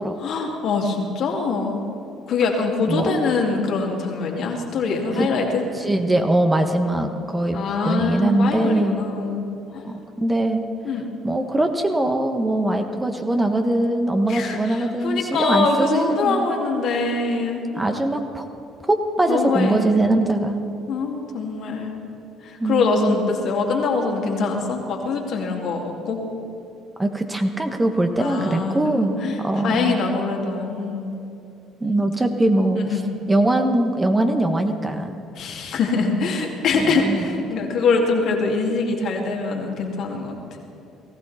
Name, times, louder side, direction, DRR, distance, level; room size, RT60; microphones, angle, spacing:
voice 1, 0.2-1.8 2.3-5.6 7.5-9.4 9.7-9.9 10.8-11.0 14.3-17.9 19.3-19.8 20.9-22.0 22.4-26.2 28.2-31.2 32.8-33.0 35.4-40.4, left 4 dB, 60° left, 1 dB, 2.5 m, -24 dB
voice 2, 5.7-9.1 9.8-10.6 11.2-16.5 17.7-18.5 18.8-20.7 22.6-23.2 27.0-30.0 31.8-32.8 33.3-35.2 36.7-37.4, right 1 dB, 15° right, 5 dB, 1.5 m, -22 dB
19.0 x 15.0 x 4.3 m, 2.7 s
hypercardioid pair, 55°, 0 cm